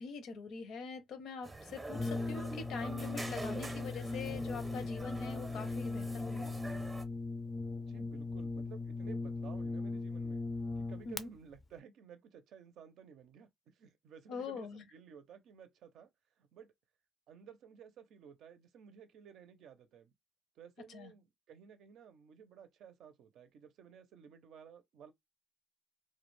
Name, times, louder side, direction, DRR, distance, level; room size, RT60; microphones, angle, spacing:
voice 1, 0.0-6.5 11.1-11.3 14.3-14.8 20.9-21.1, left 5 dB, 80° left, 0.6 m, -44 dB
sound 1, 1.4-7.0, right 2 dB, 20° right, 0.6 m, -46 dB
Brass instrument, 1.9-11.2, left 3 dB, 25° left, 0.3 m, -39 dB
voice 2, 7.9-10.4 10.8-16.1 16.4-16.7 17.3-20.1 20.6-25.1, right 7 dB, 80° right, 0.5 m, -55 dB
2.3 x 2.1 x 3.1 m
cardioid pair, 90°, 0 cm